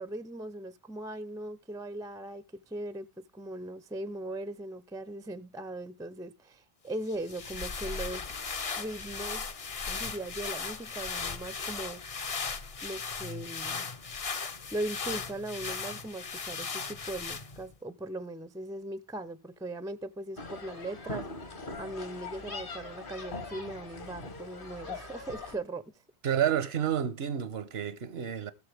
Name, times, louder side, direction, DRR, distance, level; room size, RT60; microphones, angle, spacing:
voice 1, 0.0-8.3 8.8-9.5 9.9-12.3 12.8-13.9 14.7-25.8, right 1 dB, 5° right, 0.3 m, -39 dB
sound 1, 7.1-17.7, left 5 dB, 40° left, 0.7 m, -37 dB
sound 2, 20.4-25.6, left 3 dB, 55° left, 1.5 m, -41 dB
voice 2, 26.2-28.5, right 9 dB, 85° right, 1.1 m, -30 dB
19.0 x 6.7 x 3.4 m
omnidirectional pair, 1.0 m